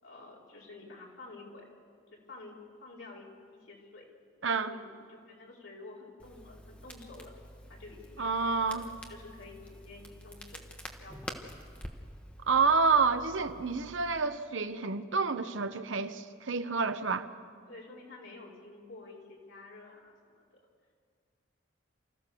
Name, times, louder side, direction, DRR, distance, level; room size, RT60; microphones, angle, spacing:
voice 1, 0.0-1.6 2.1-4.1 4.3-7.3 7.7-10.6 11.0-11.4 17.7-20.6, left 2 dB, 80° left, 4.5 m, -50 dB
voice 2, 4.4-4.7 8.2-8.9 12.5-17.3, right 4 dB, 80° right, 1.0 m, -28 dB
Crackle, 6.2-14.2, equal, 5° left, 1.3 m, -48 dB
29.0 x 14.5 x 7.0 m
head